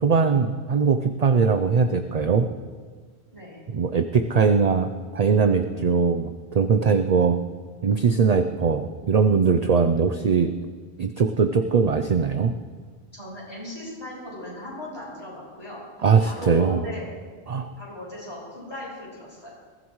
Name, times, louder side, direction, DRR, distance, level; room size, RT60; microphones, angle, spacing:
voice 1, 0.0-2.5 3.7-7.4 7.8-10.5 11.0-12.5 16.0-16.8 17.5-17.7, right 5 dB, 45° right, 7 dB, 0.6 m, -21 dB
voice 2, 13.1-15.8 16.2-17.1 17.8-19.5, left 1 dB, 25° left, -7 dB, 5.9 m, -38 dB
21.5 x 15.0 x 3.1 m, 1.5 s
omnidirectional pair, 1.1 m